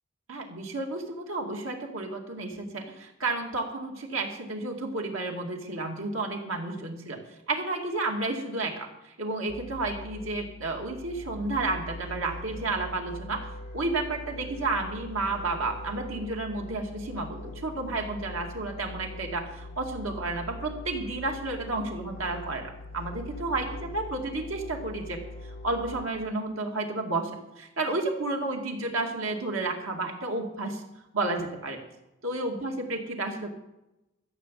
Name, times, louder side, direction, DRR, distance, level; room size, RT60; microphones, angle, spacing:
voice 1, 0.3-7.2 7.5-13.5 13.7-23.7 23.9-25.2 25.6-27.3 27.6-30.8 31.1-31.8 32.2-33.5, right 2 dB, 85° right, 2 dB, 2.3 m, -31 dB
sound 1, 9.5-26.0, left 2 dB, 50° left, 2.6 m, -42 dB
14.0 x 7.8 x 7.5 m, 0.93 s
head